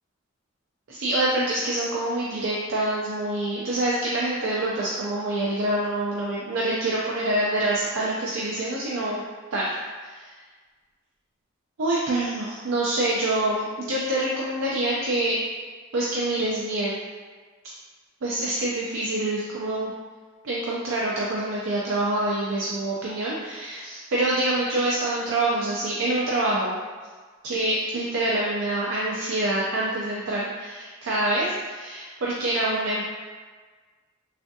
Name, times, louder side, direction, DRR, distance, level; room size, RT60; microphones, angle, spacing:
voice 1, 0.9-9.2 9.5-10.3 11.8-15.4 15.9-17.0 18.2-19.9 20.4-26.8 27.4-33.0, right 1 dB, 85° right, -5 dB, 0.4 m, -26 dB
3.4 x 2.4 x 2.6 m, 1.4 s
head